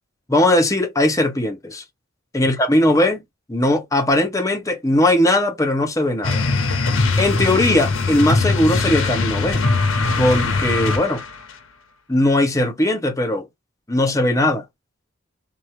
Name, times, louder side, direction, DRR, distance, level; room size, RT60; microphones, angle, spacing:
voice 1, 0.3-1.8 2.3-3.2 3.5-6.5 7.2-9.6 10.2-11.2 12.1-13.5 13.9-14.6, left 1 dB, 15° left, 0.7 m, -19 dB
sound 1, 6.2-11.4, left 3 dB, 75° left, 0.8 m, -21 dB
2.9 x 2.2 x 3.2 m
head